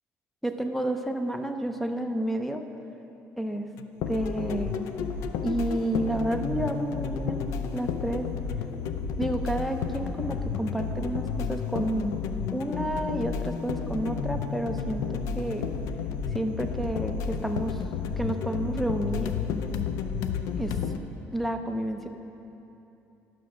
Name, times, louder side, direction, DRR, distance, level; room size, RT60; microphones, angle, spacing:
voice 1, 0.4-2.7 3.4-3.7 4.1-4.8 5.4-7.5 7.7-8.3 9.2-12.2 12.5-15.7 16.3-17.8 18.2-19.4 20.6-20.8 21.3-22.1, right 1 dB, 5° left, 6 dB, 0.6 m, -30 dB
sound 1, 3.8-21.0, left 6 dB, 80° left, 0.5 m, -31 dB
11.5 x 6.1 x 6.0 m, 2.9 s
cardioid pair, 125°, 5 cm